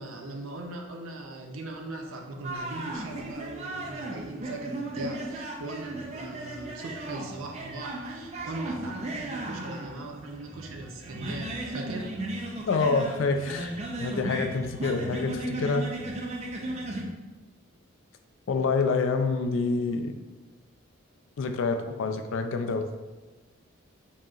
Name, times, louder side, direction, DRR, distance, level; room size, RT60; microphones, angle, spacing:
voice 1, 0.0-12.1, right 2 dB, 80° right, 2 dB, 0.6 m, -39 dB
sound 1, 2.4-17.0, right 1 dB, 30° right, 0.4 m, -36 dB
voice 2, 12.7-15.8 18.5-20.1 21.4-22.8, left 4 dB, 70° left, 7 dB, 0.3 m, -27 dB
4.8 x 2.9 x 2.4 m, 1.2 s
head